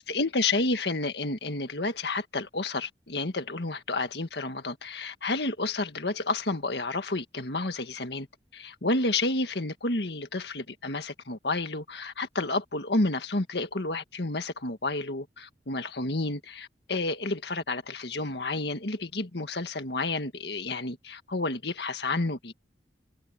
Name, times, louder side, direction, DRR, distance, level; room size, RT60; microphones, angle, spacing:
voice 1, 0.0-8.3 8.5-22.5, left 2 dB, 70° left, 1.8 m, -30 dB
head